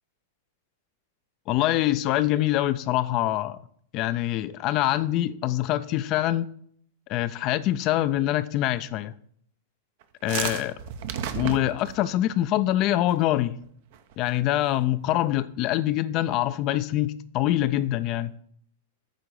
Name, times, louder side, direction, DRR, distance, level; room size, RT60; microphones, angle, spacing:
voice 1, 1.5-3.6 3.9-6.5 7.1-9.1 10.2-10.7 11.3-13.6 14.2-18.3, left 14 dB, 45° left, 0.4 m, -24 dB
sound 1, 10.0-12.1 13.1-13.4 13.6-13.7 13.9-14.3, right 8 dB, 60° right, 0.7 m, -32 dB
9.0 x 3.7 x 7.0 m
hypercardioid pair, 105°, 0 cm